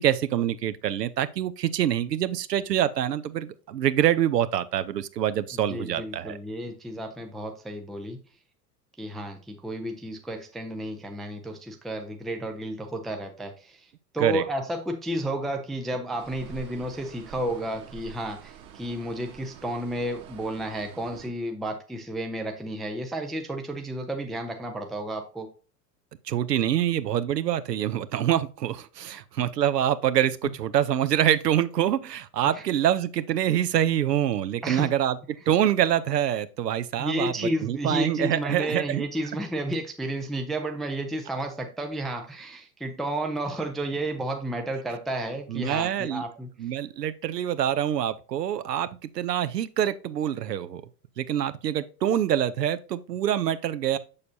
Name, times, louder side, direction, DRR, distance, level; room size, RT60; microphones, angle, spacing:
voice 1, 0.0-6.4 14.2-14.4 26.3-35.2 35.5-39.1 45.5-46.2 46.6-48.9 49.1-50.8 51.2-54.0, right 11 dB, 75° right, 0.7 m, -25 dB
voice 2, 5.5-8.2 9.0-13.9 14.1-25.5 29.1-29.2 32.5-32.6 34.6-34.9 37.0-46.5, right 1 dB, ahead, 0.3 m, -32 dB
sound 1, 16.2-21.3, right 9 dB, 40° right, 1.3 m, -46 dB
7.1 x 6.6 x 2.7 m
figure-of-eight pair, 80°, 49 cm